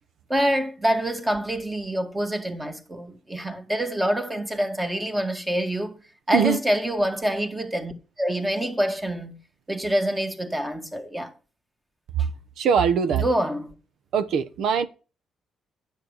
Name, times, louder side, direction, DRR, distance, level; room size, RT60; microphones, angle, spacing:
voice 1, 0.3-6.0 6.3-9.4 9.7-11.3 13.2-13.7, equal, 15° right, 1.9 m, -26 dB
voice 2, 12.6-13.2 14.1-14.9, right 7 dB, 75° right, 1.0 m, -21 dB
9.7 x 7.2 x 6.5 m
cardioid pair, 90°, 0 cm